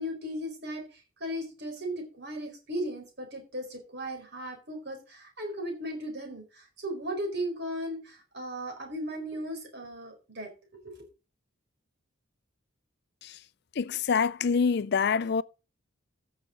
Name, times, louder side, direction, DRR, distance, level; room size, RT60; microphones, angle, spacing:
voice 1, 0.0-11.0, equal, 50° right, 4.3 m, -37 dB
voice 2, 13.8-15.4, left 5 dB, 50° left, 0.4 m, -26 dB
15.0 x 6.6 x 3.8 m
head